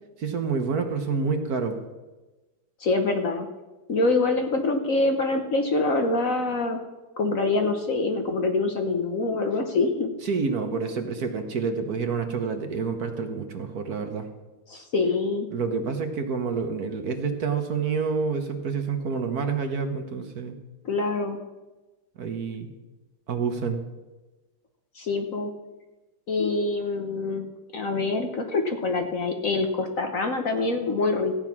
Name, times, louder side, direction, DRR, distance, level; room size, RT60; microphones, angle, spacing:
voice 1, 0.2-1.8 10.2-14.3 15.5-20.6 22.2-22.7 23.3-23.8, right 5 dB, 55° right, 6 dB, 1.4 m, -28 dB
voice 2, 2.8-3.5 3.9-6.8 7.2-10.1 14.7-15.5 20.8-21.4 24.9-25.5 26.3-27.5 27.7-31.4, left 3 dB, 50° left, 5 dB, 1.2 m, -25 dB
15.0 x 9.0 x 6.0 m, 1.1 s
omnidirectional pair, 2.1 m